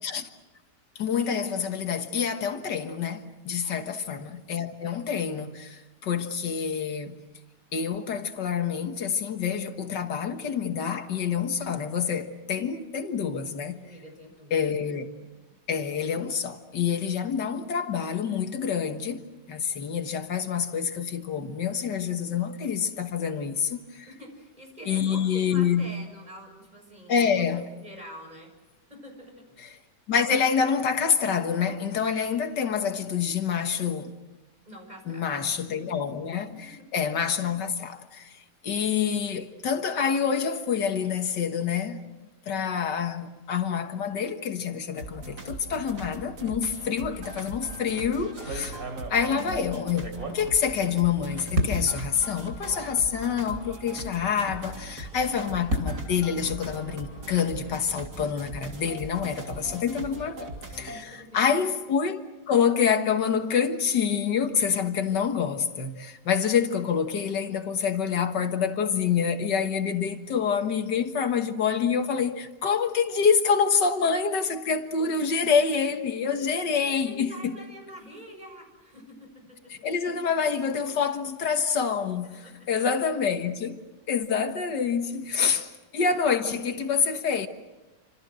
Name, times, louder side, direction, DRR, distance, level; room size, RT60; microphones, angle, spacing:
voice 1, 1.0-7.2 7.7-13.8 14.5-15.1 15.7-24.1 24.9-25.9 27.1-27.7 29.6-29.7 30.1-34.1 35.1-42.0 42.5-48.8 49.1-62.2 62.5-77.6 79.7-83.8 84.1-87.5, left 6 dB, 85° left, 2.1 m, -27 dB
voice 2, 13.7-14.6 24.1-28.5 28.9-29.4 34.7-35.5 35.8-35.9 36.6-36.9 60.9-61.3 77.0-79.7 82.3-82.7 85.4-85.6, equal, 25° right, 6.9 m, -46 dB
sound 1, 45.0-61.0, right 2 dB, 70° right, 3.6 m, -40 dB
sound 2, 47.6-47.8 48.3-51.1 51.5-52.1 52.8-52.9 53.3-53.4 55.0-57.3, equal, 55° right, 4.1 m, -33 dB
29.5 x 26.5 x 6.3 m
omnidirectional pair, 1.8 m